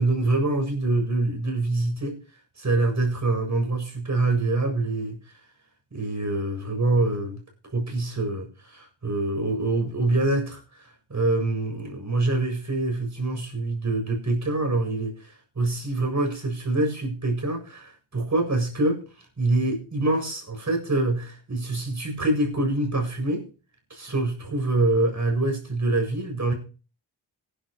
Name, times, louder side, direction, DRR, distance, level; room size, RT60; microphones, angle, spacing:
voice 1, 0.0-2.2 2.6-5.2 5.9-7.4 7.7-19.0 19.4-23.4 23.9-26.5, right 2 dB, 35° right, 7.7 m, -25 dB
18.5 x 11.5 x 3.0 m
supercardioid pair, 50°, 47 cm